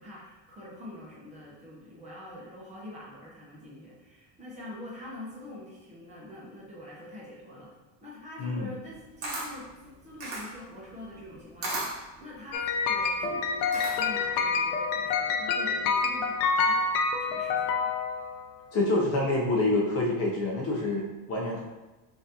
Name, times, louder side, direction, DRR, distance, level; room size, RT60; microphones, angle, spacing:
voice 1, 0.0-7.7 8.0-16.4 16.6-17.9 18.2-18.3, left 1 dB, 15° right, -6 dB, 0.7 m, -45 dB
voice 2, 8.4-8.7 18.7-21.6, left 2 dB, 35° left, -3 dB, 0.6 m, -27 dB
Camera, 8.8-14.3, right 2 dB, 40° right, 1.2 m, -37 dB
sound 1, 12.5-18.5, left 4 dB, 85° left, 0.6 m, -27 dB
5.6 x 2.6 x 2.8 m, 1.1 s
cardioid pair, 175°, 41 cm